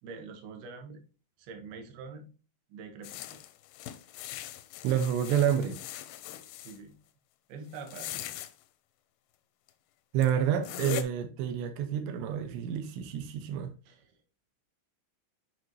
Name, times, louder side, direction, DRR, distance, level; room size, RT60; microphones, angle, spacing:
voice 1, 0.0-1.0 1.4-2.3 2.7-3.4 6.6-7.0 7.5-8.2 13.9-14.0, right 4 dB, 75° right, 2.9 m, -45 dB
sound 1, 3.0-6.8 7.8-8.5 9.7-9.8 10.2-10.3 10.6-11.0, left 12 dB, 85° left, 2.3 m, -40 dB
voice 2, 4.8-5.8 10.1-13.7, right 9 dB, 90° right, 2.9 m, -29 dB
8.4 x 4.5 x 3.1 m
omnidirectional pair, 4.7 m